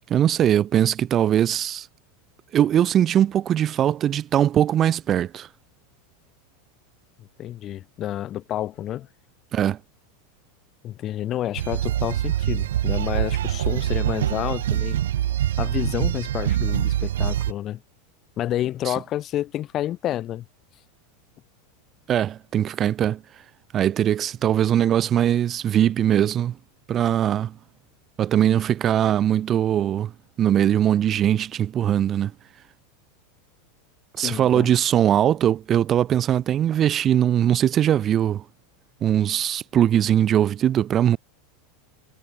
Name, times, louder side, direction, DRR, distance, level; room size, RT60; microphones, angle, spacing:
voice 1, 0.1-1.9 2.5-5.5 9.5-9.8 18.8-18.9 22.1-23.2 23.7-26.6 26.9-27.5 28.2-30.1 30.4-32.3 34.2-38.4 39.0-41.2, right 10 dB, 30° right, 0.9 m, -21 dB
voice 2, 7.2-9.1 10.8-15.0 15.6-17.8 18.4-20.4 34.2-34.7, left 12 dB, 35° left, 5.9 m, -29 dB
sound 1, 11.6-17.5, right 11 dB, 65° right, 0.9 m, -24 dB
figure-of-eight pair, 85°, 0 cm